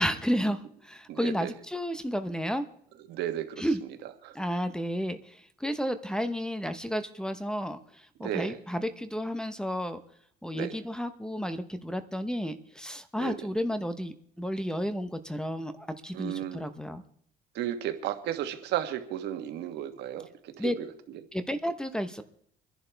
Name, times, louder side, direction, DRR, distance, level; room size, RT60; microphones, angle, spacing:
voice 1, 0.0-2.7 3.6-3.8 4.3-10.0 10.4-17.0 20.6-20.7 21.3-22.2, equal, 5° left, 10 dB, 0.9 m, -32 dB
voice 2, 1.1-1.5 3.1-3.7 4.0-4.4 8.2-8.6 10.5-10.8 13.2-13.5 16.1-16.7 17.5-21.2, right 11 dB, 80° right, 7 dB, 1.4 m, -34 dB
26.0 x 11.0 x 3.4 m, 0.64 s
cardioid pair, 110°, 17 cm